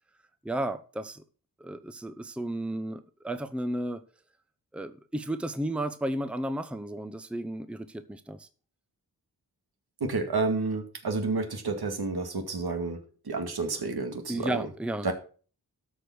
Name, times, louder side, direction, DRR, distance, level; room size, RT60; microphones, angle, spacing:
voice 1, 0.4-1.2 1.6-4.0 4.7-8.5 14.3-15.1, right 1 dB, 5° right, 10 dB, 0.7 m, -33 dB
voice 2, 10.0-13.0 13.3-14.5 15.0-15.1, right 3 dB, 70° right, 6 dB, 2.1 m, -30 dB
13.0 x 5.0 x 6.2 m, 0.39 s
wide cardioid pair, 95°, 39 cm